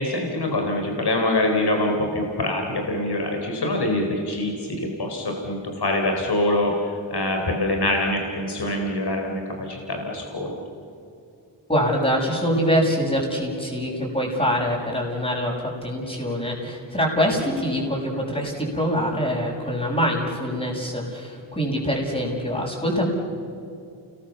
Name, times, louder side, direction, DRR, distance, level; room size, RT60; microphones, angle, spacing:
voice 1, 0.0-10.5, left 1 dB, 60° left, 2 dB, 4.3 m, -25 dB
voice 2, 11.7-23.1, equal, 15° left, -5 dB, 6.6 m, -24 dB
29.0 x 21.0 x 7.1 m, 2.5 s
cardioid pair, 45°, 44 cm